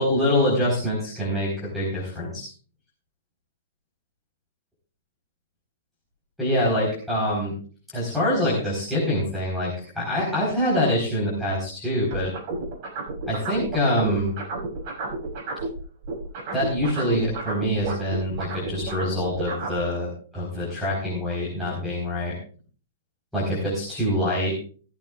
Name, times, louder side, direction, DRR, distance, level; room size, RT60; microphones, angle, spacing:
voice 1, 0.0-2.5 6.4-7.6 7.9-12.3 13.3-14.3 16.5-22.3 23.3-24.5, left 1 dB, ahead, -8 dB, 4.3 m, -25 dB
sound 1, 12.1-15.8 16.0-19.8, right 3 dB, 35° right, 5.9 m, -31 dB
16.5 x 14.5 x 2.5 m, 0.41 s
supercardioid pair, 175°, 0 cm